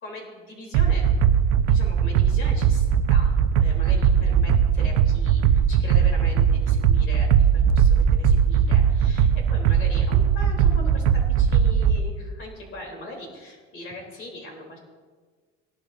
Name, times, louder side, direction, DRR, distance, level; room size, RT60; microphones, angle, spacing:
voice 1, 0.0-1.1 1.4-14.8, left 1 dB, 40° left, 0 dB, 3.5 m, -40 dB
sound 1, 0.7-12.0, right 8 dB, 75° right, 0.7 m, -19 dB
18.0 x 11.5 x 2.7 m, 1.5 s
cardioid pair, 145°, 31 cm